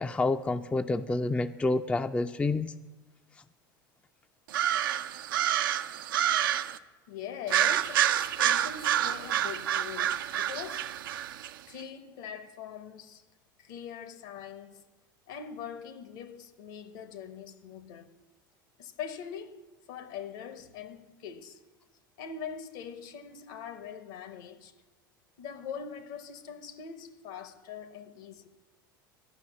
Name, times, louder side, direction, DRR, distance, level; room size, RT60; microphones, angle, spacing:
voice 1, 0.0-2.7, left 2 dB, 10° left, 0.4 m, -28 dB
sound 1, 4.5-6.8 7.5-11.5, right 11 dB, 70° right, 0.5 m, -28 dB
voice 2, 7.1-10.9 11.7-13.2 13.6-14.8 15.3-18.1 18.8-19.6 19.9-21.6 22.2-24.7 25.4-28.5, left 7 dB, 65° left, 1.0 m, -42 dB
11.0 x 6.1 x 8.7 m
hypercardioid pair, 80°, 11 cm